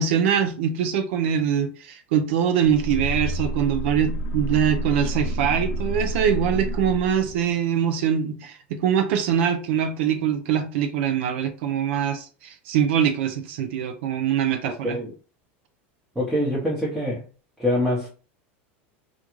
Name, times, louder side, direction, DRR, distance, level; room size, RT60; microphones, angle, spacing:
voice 1, 0.0-15.0, right 8 dB, 75° right, 0.4 m, -23 dB
sound 1, 2.6-7.5, right 1 dB, 65° left, 0.4 m, -29 dB
voice 2, 16.2-17.2 17.6-18.1, left 1 dB, 5° right, 0.8 m, -24 dB
2.4 x 2.2 x 3.0 m
supercardioid pair, 120°, 7 cm